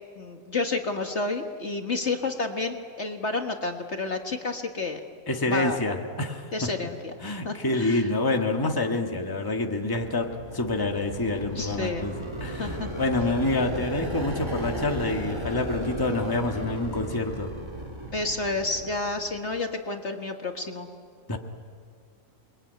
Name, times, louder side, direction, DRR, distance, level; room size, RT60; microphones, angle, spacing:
voice 1, 0.2-5.0 5.4-5.8 6.5-7.1 7.4-8.1 11.6-12.1 12.6-12.9 18.1-20.9, left 3 dB, 45° left, 4 dB, 1.8 m, -30 dB
voice 2, 5.3-6.7 7.2-17.5 21.3-21.4, left 2 dB, 15° left, 3 dB, 1.7 m, -27 dB
sound 1, 9.7-19.5, right 1 dB, 15° right, 2.9 m, -35 dB
28.5 x 22.0 x 9.3 m, 2.1 s
omnidirectional pair, 1.6 m